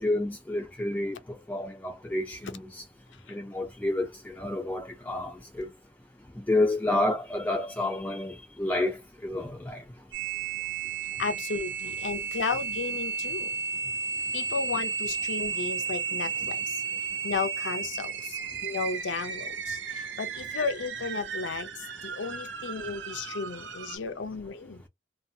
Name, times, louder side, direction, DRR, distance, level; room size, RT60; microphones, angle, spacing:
voice 1, 0.0-2.8 3.3-5.7 6.4-9.8, left 2 dB, 10° left, 0.4 m, -30 dB
sound 1, 10.1-24.0, right 6 dB, 80° right, 0.6 m, -34 dB
voice 2, 11.2-13.5 14.3-16.8 17.2-24.9, left 4 dB, 80° left, 0.6 m, -34 dB
2.8 x 2.2 x 2.7 m
head